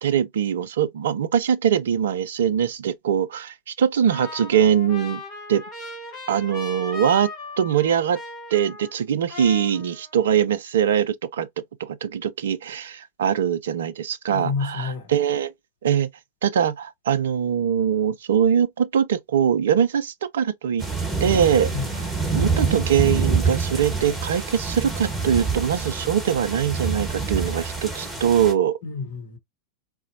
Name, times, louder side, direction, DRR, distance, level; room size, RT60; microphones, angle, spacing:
voice 1, 0.0-5.2 5.5-5.6 6.3-7.3 7.6-8.2 8.5-11.5 11.8-15.5 15.8-16.1 16.4-20.8 21.2-21.7 22.3-28.8, right 8 dB, 60° right, 0.3 m, -22 dB
Trumpet, 4.1-9.0 9.3-10.3, left 3 dB, 35° left, 1.9 m, -38 dB
voice 2, 14.3-15.1 21.7-21.9 28.8-29.4, left 5 dB, 55° left, 0.9 m, -29 dB
sound 1, 20.8-28.5, right 4 dB, 5° right, 1.2 m, -26 dB
3.9 x 2.0 x 2.5 m
figure-of-eight pair, 90°, 0 cm